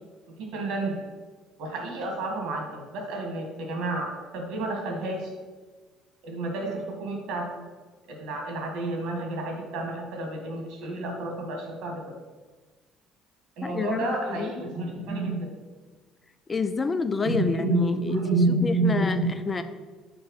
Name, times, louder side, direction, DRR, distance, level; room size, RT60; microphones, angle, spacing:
voice 1, 0.5-1.0 1.6-5.3 6.2-7.6 8.1-11.9 13.6-15.5 17.2-19.4, right 2 dB, 80° right, 2 dB, 2.2 m, -29 dB
voice 2, 13.6-14.5 16.5-19.2 19.5-19.6, left 4 dB, 25° left, 10 dB, 0.5 m, -28 dB
6.1 x 4.9 x 5.7 m, 1.4 s
cardioid pair, 100°, 0 cm